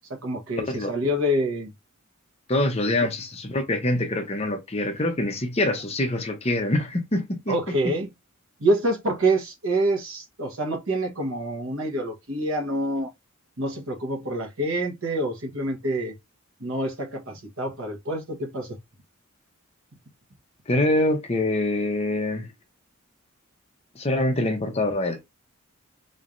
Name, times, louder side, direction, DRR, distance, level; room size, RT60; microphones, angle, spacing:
voice 1, 0.1-1.7 7.5-8.1 8.6-13.1 13.6-16.1 16.6-18.8, right 1 dB, 70° right, 1.2 m, -26 dB
voice 2, 2.5-7.9 20.7-22.5 23.9-25.2, left 1 dB, 30° left, 0.8 m, -25 dB
4.1 x 3.2 x 2.6 m
head